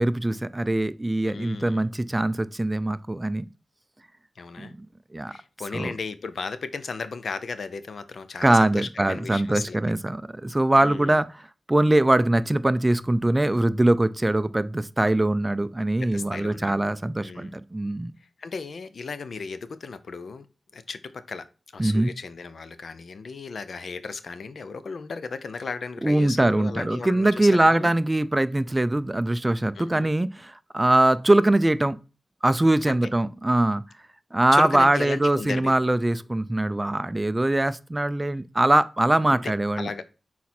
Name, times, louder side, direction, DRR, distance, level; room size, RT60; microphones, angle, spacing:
voice 1, 0.0-3.5 4.6-4.9 5.1-5.3 5.7-5.9 8.4-11.3 11.7-18.1 21.8-22.1 26.0-32.0 32.4-33.8 34.3-39.9, right 1 dB, 20° right, 0.4 m, -22 dB
voice 2, 1.2-1.8 4.4-4.7 5.3-9.8 10.8-11.2 16.0-16.8 17.2-17.6 18.4-20.5 20.7-21.5 21.7-27.9 29.8-30.1 32.9-33.1 34.5-35.9 39.3-40.0, left 4 dB, 75° left, 0.6 m, -35 dB
6.2 x 4.2 x 4.3 m
cardioid pair, 70°, 0 cm